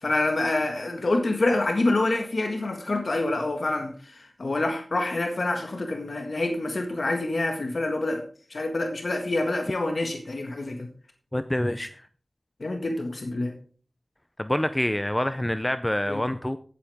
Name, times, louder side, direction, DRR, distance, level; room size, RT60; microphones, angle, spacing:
voice 1, 0.0-8.2 8.5-10.8 12.6-13.5 16.1-16.2, left 2 dB, 75° left, 3 dB, 1.7 m, -27 dB
voice 2, 11.3-12.1 14.4-16.6, left 1 dB, 20° left, 11 dB, 0.6 m, -26 dB
15.5 x 8.6 x 3.6 m, 0.43 s
wide cardioid pair, 65°, 0 cm